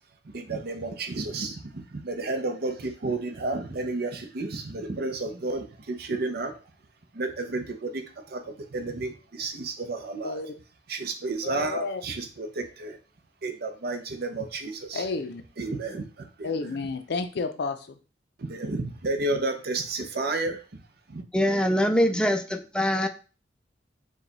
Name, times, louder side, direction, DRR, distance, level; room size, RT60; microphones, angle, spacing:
voice 1, 0.2-6.6 7.1-10.4 10.9-13.0 13.4-15.1 15.6-16.5 18.4-20.8 21.1-21.2, right 2 dB, 60° right, 0.7 m, -32 dB
voice 2, 11.4-12.0 14.9-15.4 16.4-18.0, left 4 dB, 65° left, 0.5 m, -31 dB
voice 3, 21.3-23.1, equal, 5° left, 0.4 m, -23 dB
4.7 x 2.3 x 3.9 m
head